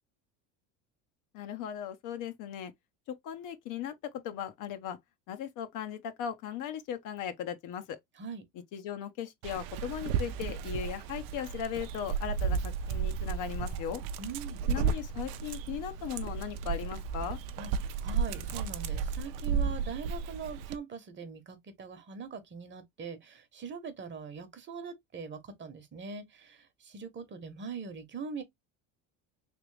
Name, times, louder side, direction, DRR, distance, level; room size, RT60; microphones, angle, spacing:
voice 1, 1.3-2.7 3.1-5.0 5.3-8.0 8.7-14.0 14.7-17.4, left 9 dB, 60° left, 0.9 m, -38 dB
Dog, 9.4-20.8, right 6 dB, 70° right, 0.7 m, -33 dB
voice 2, 14.2-14.6 17.6-28.4, right 5 dB, 30° right, 1.0 m, -42 dB
3.3 x 3.0 x 3.2 m
supercardioid pair, 115°, 36 cm